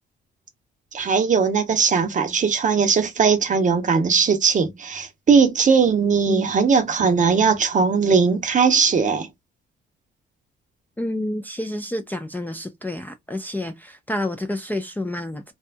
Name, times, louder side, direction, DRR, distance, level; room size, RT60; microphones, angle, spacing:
voice 1, 0.9-9.3, right 5 dB, 40° right, 0.6 m, -19 dB
voice 2, 11.0-15.5, left 1 dB, 10° left, 0.4 m, -29 dB
2.7 x 2.2 x 2.5 m
cardioid pair, 90°, 20 cm